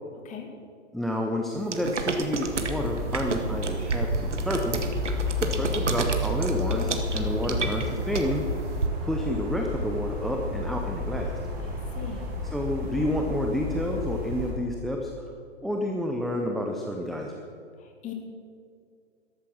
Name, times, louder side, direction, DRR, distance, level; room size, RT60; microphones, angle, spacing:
voice 1, 0.9-8.4 9.0-11.3 12.5-15.3 15.6-17.5, left 1 dB, ahead, 1 dB, 0.6 m, -30 dB
sound 1, 1.7-8.9, right 4 dB, 75° right, 1.8 m, -31 dB
sound 2, 2.4-14.5, left 1 dB, 25° right, 4.5 m, -31 dB
voice 2, 11.6-12.3 17.8-18.1, left 8 dB, 20° left, 3 dB, 2.3 m, -40 dB
14.0 x 13.0 x 6.1 m, 2.3 s
figure-of-eight pair, 120°, 36 cm